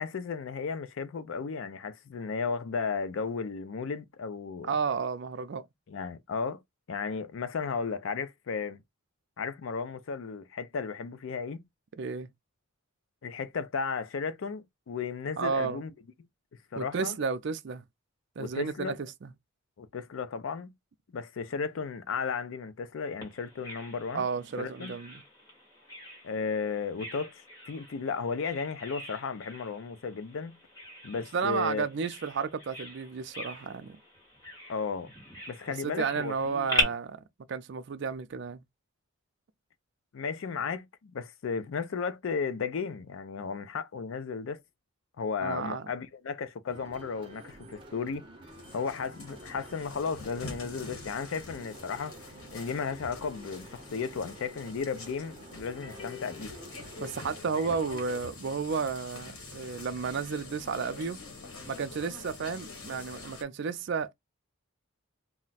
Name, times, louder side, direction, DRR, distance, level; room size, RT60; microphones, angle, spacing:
voice 1, 0.0-4.7 5.9-6.6 6.9-8.8 9.4-11.6 13.2-15.9 16.7-17.2 18.4-18.9 19.8-20.7 21.1-24.2 24.6-24.9 26.2-30.6 31.0-31.8 34.7-35.1 35.5-36.9 40.1-44.6 45.2-48.2 48.7-52.2 52.5-56.5 57.5-57.7, left 5 dB, 65° left, 0.4 m, -34 dB
voice 2, 4.6-5.7 12.0-12.3 15.4-15.8 16.8-17.8 18.4-19.3 24.1-25.2 31.3-34.0 35.8-37.2 37.5-38.6 45.4-45.9 57.0-61.2 61.7-64.1, right 5 dB, 55° right, 0.4 m, -32 dB
Bird vocalization bird call bird song, 23.2-36.8, equal, 15° left, 1.3 m, -40 dB
sound 1, 46.7-57.4, right 1 dB, 25° right, 0.7 m, -50 dB
sound 2, 48.5-63.4, left 3 dB, 85° left, 1.0 m, -46 dB
2.4 x 2.1 x 3.9 m
head